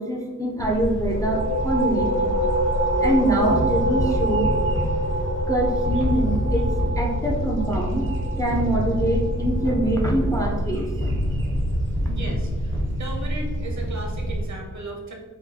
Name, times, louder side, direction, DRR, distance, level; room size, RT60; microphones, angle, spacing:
voice 1, 0.0-2.4 3.0-4.5 5.5-6.7 7.0-8.0 8.4-10.9, right 1 dB, 10° left, -1 dB, 0.4 m, -24 dB
sound 1, 0.6-14.5, right 1 dB, 40° right, 0.5 m, -29 dB
sound 2, 1.0-10.4, right 1 dB, 75° left, 1.1 m, -27 dB
sound 3, 3.5-13.4, left 1 dB, 55° left, 0.9 m, -28 dB
voice 2, 12.1-12.7 13.0-15.1, right 2 dB, 60° right, 1 dB, 0.8 m, -35 dB
5.0 x 2.3 x 2.7 m, 1.4 s
wide cardioid pair, 140°, 32 cm